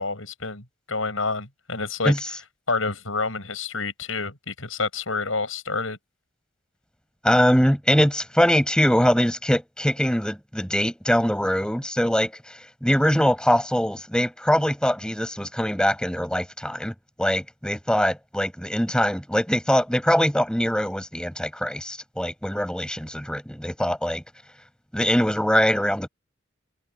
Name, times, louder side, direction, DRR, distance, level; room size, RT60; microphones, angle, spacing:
voice 1, 0.0-2.4 2.7-6.0, left 4 dB, 80° left, 7.0 m, -28 dB
voice 2, 7.2-24.2 24.9-26.1, equal, 5° left, 6.4 m, -22 dB
head